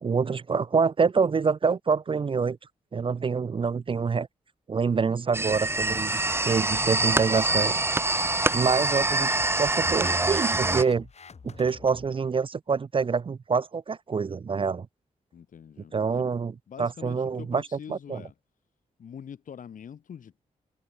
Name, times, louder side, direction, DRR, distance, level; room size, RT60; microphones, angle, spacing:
voice 1, 0.0-2.6 2.9-4.3 4.7-7.8 8.5-11.1 11.4-14.9 15.9-16.5 16.8-17.6 17.9-18.2, right 5 dB, 40° right, 0.5 m, -26 dB
sound 1, 5.3-10.8, right 2 dB, 15° right, 0.9 m, -25 dB
sound 2, 5.9-12.1, left 5 dB, 50° left, 2.0 m, -48 dB
voice 2, 15.3-16.3 16.7-18.3 19.0-20.4, left 8 dB, 70° left, 1.3 m, -44 dB
cardioid pair, 60°, 14 cm